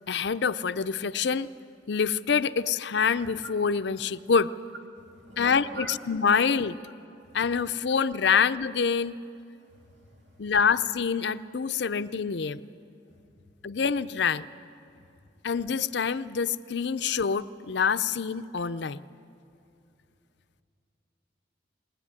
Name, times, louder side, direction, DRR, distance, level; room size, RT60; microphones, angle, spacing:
voice 1, 0.1-1.5 1.9-4.5 5.4-6.8 7.3-9.2 10.4-12.6 13.6-14.5 15.4-19.0, left 6 dB, 65° left, 13 dB, 0.5 m, -26 dB
voice 2, 3.2-3.5 4.9-6.0 7.2-7.4 8.3-8.4 9.6-10.5 11.9-12.1 13.1-13.2, right 2 dB, 70° right, 1 dB, 2.8 m, -44 dB
21.0 x 19.5 x 9.7 m, 2.6 s
head